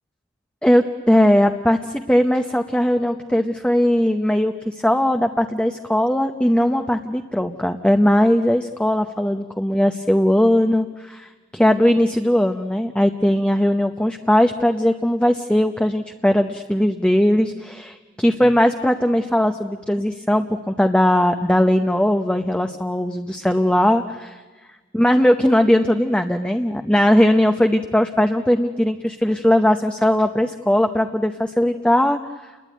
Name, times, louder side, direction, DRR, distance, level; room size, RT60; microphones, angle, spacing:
voice 1, 0.6-24.3 24.9-32.2, left 1 dB, 5° left, 6 dB, 0.8 m, -19 dB
29.5 x 21.0 x 9.3 m, 1.3 s
head